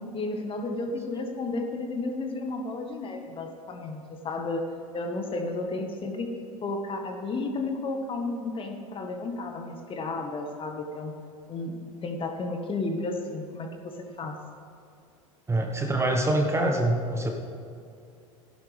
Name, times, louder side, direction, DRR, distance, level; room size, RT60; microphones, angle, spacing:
voice 1, 0.1-4.7 4.9-6.3 6.6-11.1 11.5-14.4, left 2 dB, 30° left, 4 dB, 1.5 m, -32 dB
voice 2, 15.5-17.3, right 1 dB, 15° right, 3 dB, 1.3 m, -25 dB
16.5 x 11.0 x 3.5 m, 2.5 s
hypercardioid pair, 85°, 18 cm